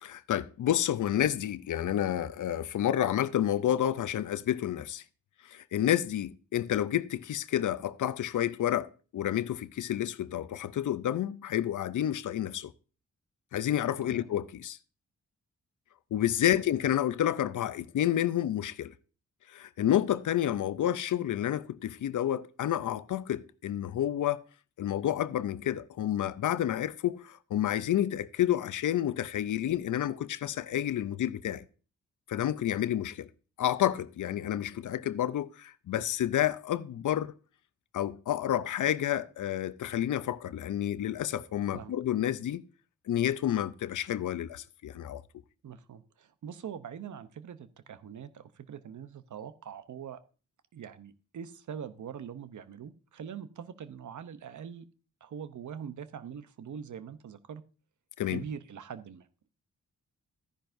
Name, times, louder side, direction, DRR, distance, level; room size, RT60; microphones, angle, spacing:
voice 1, 0.0-5.0 5.4-12.7 13.5-14.8 16.1-18.9 19.5-24.4 24.8-31.6 32.3-33.3 33.6-37.3 37.9-42.6 43.1-45.2 58.2-58.4, left 11 dB, 75° left, 0.6 m, -30 dB
voice 2, 45.6-50.2 50.7-54.9 55.2-57.6 58.3-59.3, right 8 dB, 70° right, 0.8 m, -43 dB
12.5 x 10.5 x 2.6 m
cardioid pair, 45°, 31 cm